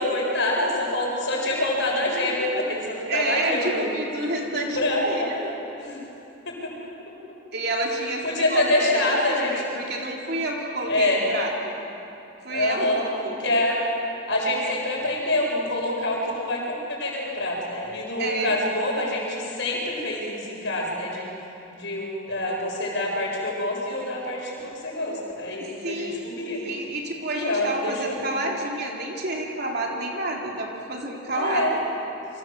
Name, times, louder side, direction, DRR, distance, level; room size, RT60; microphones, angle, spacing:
voice 1, 0.0-3.9 4.5-5.3 5.8-6.0 6.5-6.7 8.2-9.5 10.9-11.2 12.5-13.0 13.4-13.8 14.3-21.3 21.7-26.6 27.3-28.1 31.3-31.7, left 1 dB, 60° left, -2 dB, 7.3 m, -26 dB
voice 2, 3.1-5.6 7.5-11.7 12.4-13.4 18.2-18.6 25.6-26.3 26.5-31.7, right 2 dB, 50° right, -1 dB, 3.7 m, -29 dB
28.5 x 25.0 x 7.7 m, 2.9 s
head